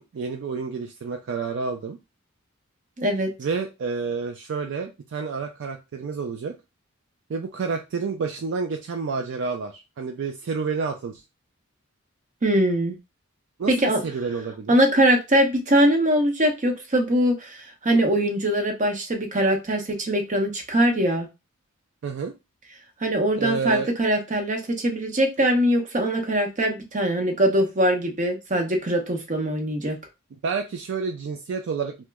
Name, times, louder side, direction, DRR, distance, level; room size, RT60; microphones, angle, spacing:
voice 1, 0.0-2.0 3.4-6.5 7.3-11.2 13.6-14.8 22.0-22.3 23.4-23.9 30.4-32.0, right 5 dB, 60° right, 4 dB, 0.4 m, -29 dB
voice 2, 3.0-3.3 12.4-13.0 13.7-14.0 14.7-21.3 23.0-30.0, right 1 dB, 35° right, 2 dB, 0.8 m, -22 dB
3.0 x 2.1 x 3.4 m, 0.25 s
head